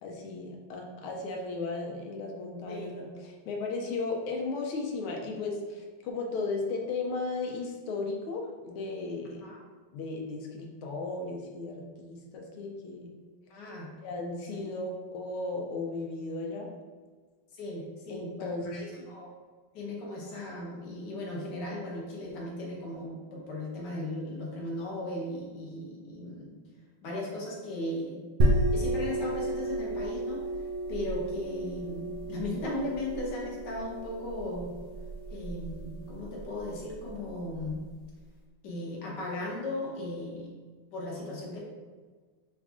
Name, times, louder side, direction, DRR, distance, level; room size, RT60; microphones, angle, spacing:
voice 1, 0.0-9.4 9.9-13.1 14.0-16.7 18.1-18.8, left 3 dB, 85° left, 1 dB, 1.5 m, -35 dB
voice 2, 13.5-13.9 14.5-14.7 17.5-19.3 19.7-26.5 27.0-28.2 28.7-30.5 30.9-34.7 35.3-37.8 38.6-40.5 40.9-41.6, left 1 dB, 60° left, -4 dB, 1.5 m, -37 dB
sound 1, 28.4-37.8, right 1 dB, 75° right, 0.8 m, -32 dB
5.1 x 2.4 x 3.5 m, 1.5 s
omnidirectional pair, 2.3 m